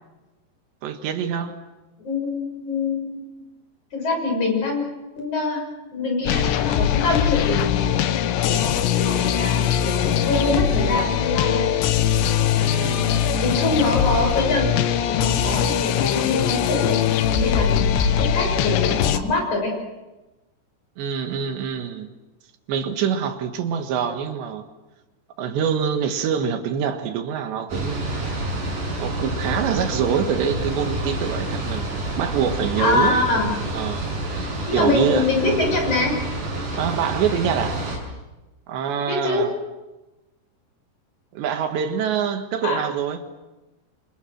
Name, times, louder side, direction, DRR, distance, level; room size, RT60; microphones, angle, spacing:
voice 1, 0.8-1.5 12.6-13.3 21.0-22.1 22.7-24.6 25.4-28.2 29.0-33.3 33.7-34.1 34.3-35.3 36.8-37.8 38.7-39.5 41.3-43.2, right 7 dB, 80° right, 3.9 m, -25 dB
voice 2, 2.0-3.2 3.9-4.8 5.2-5.6 5.9-11.6 13.4-14.7 15.1-17.0 17.3-19.7 32.8-33.5 34.7-36.1 39.1-39.5 42.6-42.8, left 3 dB, 45° left, 7.8 m, -24 dB
sound 1, 6.3-19.2, left 9 dB, 85° left, 3.4 m, -21 dB
sound 2, 27.7-38.0, right 2 dB, 50° right, 8.0 m, -28 dB
28.5 x 26.5 x 6.6 m
omnidirectional pair, 4.9 m